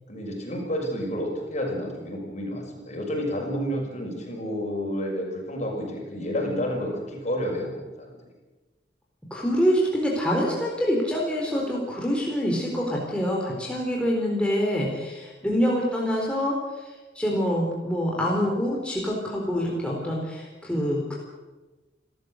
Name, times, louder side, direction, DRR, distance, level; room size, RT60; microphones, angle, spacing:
voice 1, 0.1-8.2 15.4-15.6, equal, 40° left, 1 dB, 6.3 m, -30 dB
voice 2, 9.3-21.1, equal, 5° left, -2 dB, 4.1 m, -26 dB
30.0 x 13.5 x 8.0 m, 1.2 s
head